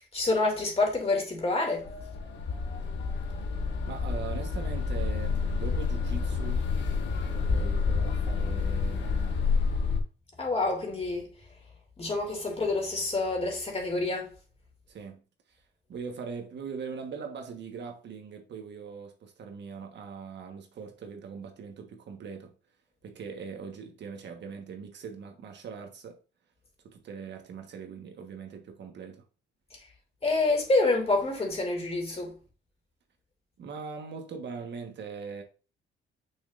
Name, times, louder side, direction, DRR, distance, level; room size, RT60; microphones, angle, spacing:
voice 1, 0.1-1.9 10.4-11.3 12.0-14.3 29.7-29.8 30.2-32.3, left 2 dB, 30° left, 2.4 m, -27 dB
sound 1, 1.8-10.0, left 5 dB, 65° left, 1.5 m, -29 dB
voice 2, 3.9-6.7 7.3-9.4 14.9-15.2 15.5-15.6 15.9-22.5 23.0-26.2 26.8-29.2 33.6-35.4, right 5 dB, 60° right, 1.3 m, -41 dB
6.3 x 6.3 x 2.5 m
cardioid pair, 90°, 20 cm